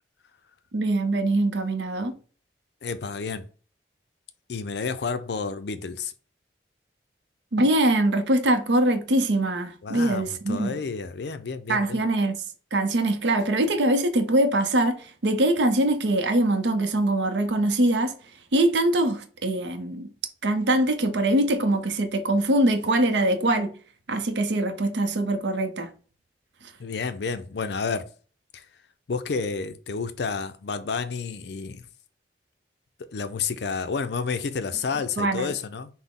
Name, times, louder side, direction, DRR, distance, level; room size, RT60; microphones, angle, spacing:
voice 1, 0.7-2.1 7.5-10.8 11.7-12.4 12.7-18.1 18.5-20.1 20.4-23.7 24.1-25.9 35.2-35.5, right 1 dB, 75° right, 0.6 m, -23 dB
voice 2, 2.8-3.5 4.5-6.1 9.8-12.0 26.8-28.1 28.5-28.6 29.1-31.8 33.1-35.9, left 5 dB, 65° left, 0.5 m, -30 dB
5.9 x 2.1 x 3.6 m
head